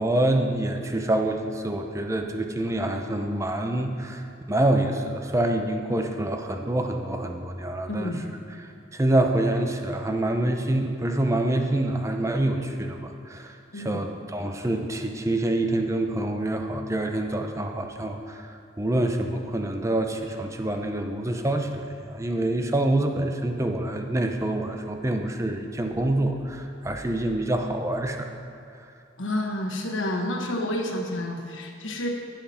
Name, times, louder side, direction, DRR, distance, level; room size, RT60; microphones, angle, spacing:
voice 1, 0.0-8.1 8.9-18.5 18.8-28.3, right 1 dB, 15° right, 4 dB, 0.6 m, -26 dB
voice 2, 7.9-8.2 13.7-13.9 29.2-32.1, left 1 dB, 85° left, 1 dB, 1.3 m, -29 dB
16.0 x 5.9 x 4.2 m, 2.5 s
head